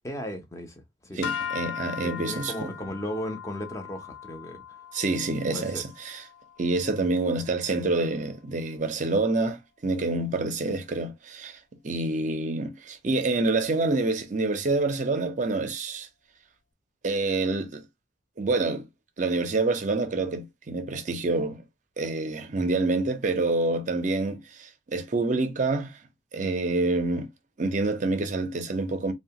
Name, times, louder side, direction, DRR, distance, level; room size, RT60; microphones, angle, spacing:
voice 1, 0.0-1.2 2.0-4.6 5.5-5.8, equal, 15° left, 0.6 m, -36 dB
sound 1, 1.2-7.6, left 8 dB, 80° left, 0.3 m, -39 dB
voice 2, 1.2-2.9 4.9-6.2 6.6-9.6 9.8-11.6 11.8-16.1 17.0-17.8 18.4-18.9 19.2-21.6 22.0-25.9 26.3-27.3 27.6-29.1, right 2 dB, 40° right, 0.5 m, -27 dB
2.8 x 2.2 x 2.8 m
head